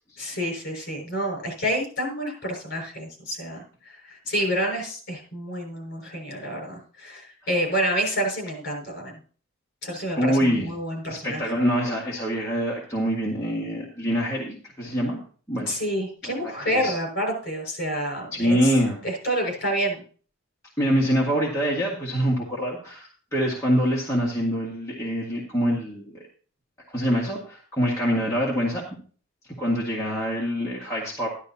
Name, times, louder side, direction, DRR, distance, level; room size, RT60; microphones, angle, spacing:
voice 1, 0.2-9.2 9.8-11.5 15.7-18.7 19.0-20.0, equal, 50° left, 1 dB, 5.8 m, -28 dB
voice 2, 10.2-10.7 11.1-15.2 15.5-15.7 16.2-16.9 18.3-19.0 20.8-26.2 26.9-28.8 29.6-31.3, equal, 15° left, -6 dB, 1.9 m, -25 dB
13.0 x 12.0 x 2.9 m, 0.42 s
head